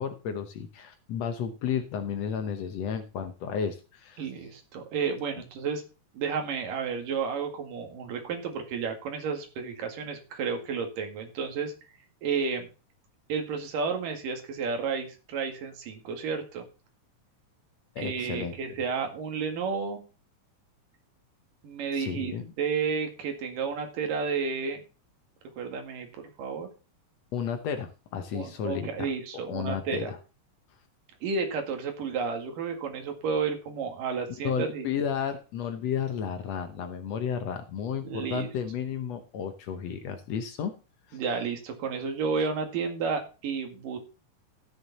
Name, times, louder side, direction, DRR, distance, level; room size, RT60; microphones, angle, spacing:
voice 1, 0.0-4.3 18.0-18.6 21.9-22.5 27.3-30.2 34.4-40.7 41.1-41.2, left 7 dB, 65° left, 9 dB, 1.9 m, -33 dB
voice 2, 4.2-5.8 6.2-11.7 12.2-12.7 13.3-16.6 18.0-20.0 21.6-24.8 25.6-26.7 28.3-30.1 31.2-34.9 38.0-38.5 41.1-44.0, right 5 dB, 90° right, 5 dB, 3.7 m, -31 dB
14.5 x 6.8 x 4.1 m, 0.33 s
omnidirectional pair, 3.7 m